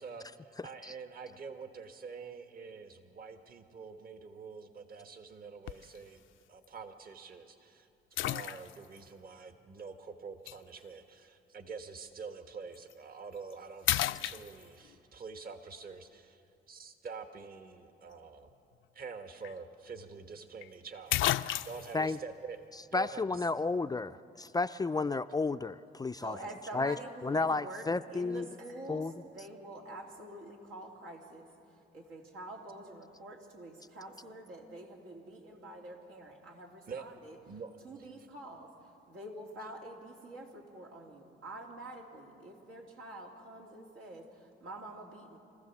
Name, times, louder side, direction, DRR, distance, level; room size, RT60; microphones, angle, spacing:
voice 1, 0.0-6.2 6.5-7.9 8.2-16.4 16.7-18.5 18.9-22.6 22.9-23.4 36.9-37.0 37.5-37.7, right 5 dB, 45° right, 7 dB, 1.5 m, -46 dB
voice 2, 0.6-0.9 21.9-22.2 22.9-26.4 26.7-27.0 27.2-28.5 28.9-29.1, left 3 dB, 20° left, 11 dB, 0.4 m, -32 dB
sound 1, 5.7-6.0 6.6-6.7 8.2-9.0 10.5-10.6 12.7-12.9 13.4-13.5 13.9-14.9 19.1-19.2 19.4-19.5 20.6-20.7 21.1-22.0, left 14 dB, 75° left, 0.5 m, -32 dB
voice 3, 26.2-37.4 37.8-45.4, right 1 dB, 85° right, -1 dB, 2.9 m, -47 dB
25.0 x 15.0 x 7.2 m, 2.7 s
cardioid pair, 90°, 20 cm